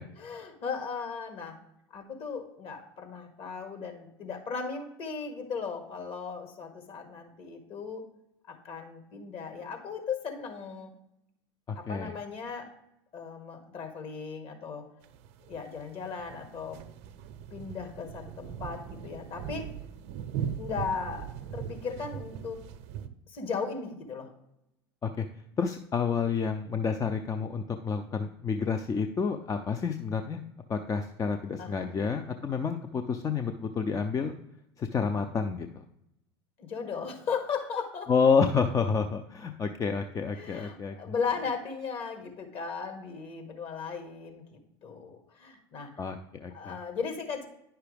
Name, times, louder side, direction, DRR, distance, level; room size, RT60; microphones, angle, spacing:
voice 1, 0.2-1.6 1.9-8.0 8.5-10.9 11.7-12.7 13.1-14.9 15.5-16.8 17.5-19.7 20.6-22.6 23.3-24.3 31.6-32.0 36.6-38.1 40.3-46.1 46.5-47.5, left 5 dB, 45° left, 5 dB, 1.7 m, -37 dB
voice 2, 11.7-12.1 25.0-25.3 25.6-30.4 30.7-34.4 34.8-35.8 38.1-40.9 46.0-46.8, left 5 dB, 25° left, 6 dB, 0.5 m, -29 dB
sound 1, 15.0-23.1, right 8 dB, 55° right, 0.6 m, -40 dB
9.7 x 5.7 x 3.4 m, 0.83 s
hypercardioid pair, 85°, 14 cm